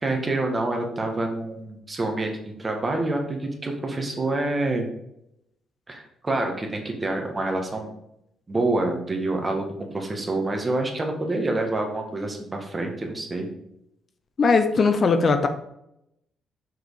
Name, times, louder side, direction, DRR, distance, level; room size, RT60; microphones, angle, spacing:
voice 1, 0.0-4.9 5.9-7.9 8.5-13.5, right 2 dB, 25° right, 3 dB, 1.7 m, -27 dB
voice 2, 14.4-15.5, left 4 dB, 45° left, 8 dB, 0.7 m, -19 dB
6.3 x 4.9 x 4.8 m, 0.81 s
cardioid pair, 90°, 0 cm